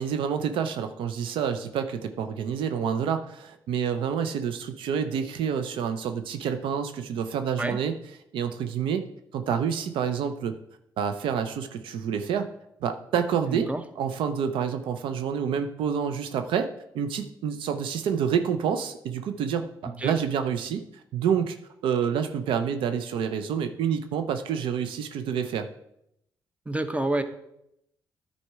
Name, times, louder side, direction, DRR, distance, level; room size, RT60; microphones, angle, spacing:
voice 1, 0.0-7.9 8.3-9.0 9.3-10.6 11.0-12.5 12.8-13.7 14.0-16.7 16.9-20.8 21.1-21.6 21.8-25.7, right 7 dB, 80° right, 8 dB, 0.6 m, -28 dB
voice 2, 13.4-13.8 19.9-20.2 26.7-27.2, right 2 dB, 15° right, 9 dB, 0.9 m, -28 dB
10.0 x 4.2 x 4.7 m, 0.78 s
supercardioid pair, 60°, 9 cm